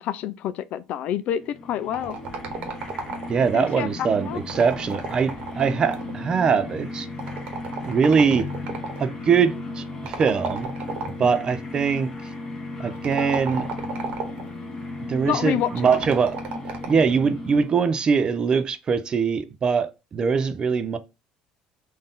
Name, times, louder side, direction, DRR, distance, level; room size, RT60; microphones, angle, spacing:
voice 1, 0.0-2.2 3.5-4.4 15.2-16.0, left 10 dB, 60° left, 0.4 m, -28 dB
sound 1, 1.3-18.0, left 2 dB, 20° left, 1.3 m, -36 dB
sound 2, 1.9-3.6 4.4-6.2 7.2-9.0 10.1-11.4 12.9-14.5 15.8-17.1, right 4 dB, 55° right, 1.1 m, -33 dB
voice 2, 3.3-7.1 7.8-8.5 9.0-10.7 11.2-12.1 12.8-13.7 15.1-16.4 16.9-21.0, right 6 dB, 30° right, 0.4 m, -22 dB
3.8 x 2.6 x 3.6 m
cardioid pair, 130°, 3 cm